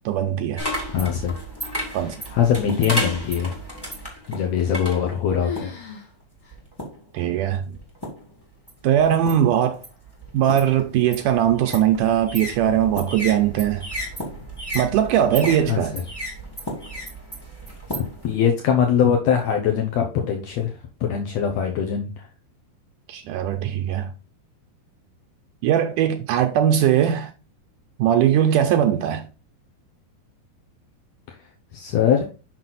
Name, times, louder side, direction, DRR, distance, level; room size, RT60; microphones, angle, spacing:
voice 1, 0.1-0.6 1.9-2.2 7.1-7.8 8.8-9.8 10.3-13.9 14.7-16.0 23.1-24.1 25.6-27.3 28.0-29.3, right 10 dB, 85° right, 1.9 m, -20 dB
sound 1, 0.6-5.9 6.5-7.1 7.7-8.3 8.7-18.3, equal, 10° left, 1.3 m, -33 dB
voice 2, 0.9-1.3 2.3-3.5 4.3-5.7 15.7-15.8 17.9-20.7 21.0-22.3 31.3-31.4 31.7-32.2, left 8 dB, 80° left, 1.5 m, -22 dB
sound 2, 4.6-5.1 5.4-6.1 6.4-6.5 7.2-7.3 8.0-8.4, left 6 dB, 45° left, 2.7 m, -36 dB
6.1 x 6.1 x 3.9 m
omnidirectional pair, 4.2 m